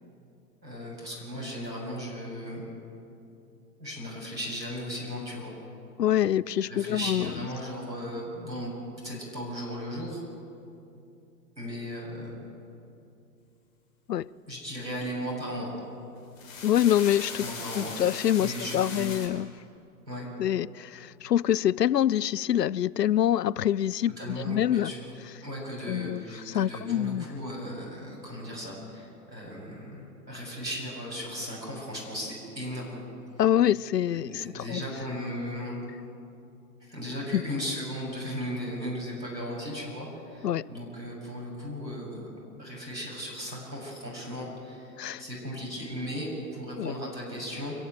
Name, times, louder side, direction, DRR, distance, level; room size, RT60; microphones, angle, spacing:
voice 1, 0.6-2.7 3.8-5.5 6.6-8.7 9.0-10.2 11.6-12.4 14.5-15.7 17.4-18.0 18.4-19.1 20.1-20.3 24.0-25.1 25.4-33.0 34.1-35.8 36.8-42.3 42.6-47.7, equal, 90° right, 7.1 m, -36 dB
voice 2, 6.0-7.3 14.1-14.3 16.6-17.5 17.8-19.5 20.4-24.9 25.9-27.3 33.4-34.8 37.3-37.4 40.4-40.7 45.0-45.2 46.8-46.9, left 11 dB, 70° left, 0.6 m, -25 dB
sound 1, 16.2-19.3, left 5 dB, 50° left, 5.6 m, -39 dB
25.5 x 14.5 x 9.1 m
figure-of-eight pair, 105°, 50 cm